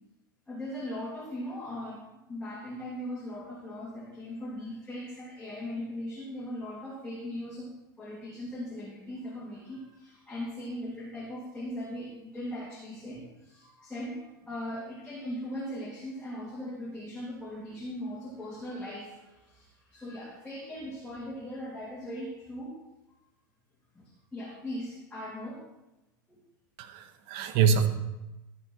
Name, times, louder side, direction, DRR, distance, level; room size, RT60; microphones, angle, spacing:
voice 1, 0.5-7.7 8.0-22.8 23.9-25.6 26.3-26.4, left 1 dB, 10° left, -5 dB, 2.6 m, -39 dB
voice 2, 26.8-27.9, right 6 dB, 50° right, 8 dB, 1.3 m, -25 dB
13.0 x 6.4 x 4.2 m, 0.99 s
hypercardioid pair, 90°, 11 cm